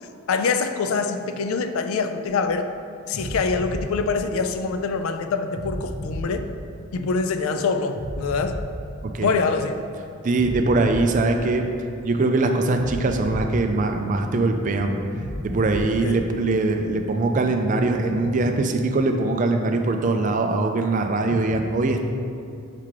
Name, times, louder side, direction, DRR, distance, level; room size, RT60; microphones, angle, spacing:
voice 1, 0.3-2.7 3.1-6.5 6.9-8.6 9.2-9.8 15.9-16.2, left 4 dB, 75° left, 8 dB, 0.4 m, -25 dB
sound 1, 2.3-2.5 3.1-4.9 5.5-7.3 7.9-9.7 10.3-12.1 12.7-14.5 15.1-16.9, equal, 35° left, 1.1 m, -34 dB
voice 2, 9.0-9.3 10.2-11.6 12.0-15.0 15.4-22.1, right 2 dB, 35° right, 5 dB, 0.4 m, -22 dB
5.7 x 3.6 x 4.7 m, 2.5 s
head